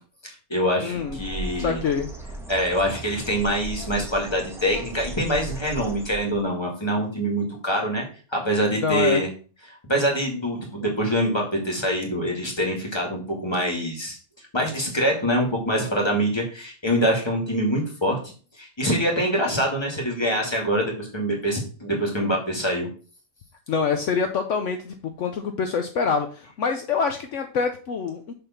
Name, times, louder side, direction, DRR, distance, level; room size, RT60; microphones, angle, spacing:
voice 1, 0.2-1.8 2.5-8.1 8.3-9.3 9.7-14.2 14.5-22.9, equal, 20° left, 0 dB, 2.0 m, -25 dB
voice 2, 0.8-1.2 1.6-2.1 8.8-9.2 23.7-28.3, left 6 dB, 70° left, 6 dB, 1.0 m, -25 dB
Bird, 0.9-6.5, right 1 dB, ahead, 1.3 m, -37 dB
7.0 x 3.6 x 5.7 m, 0.39 s
omnidirectional pair, 1.4 m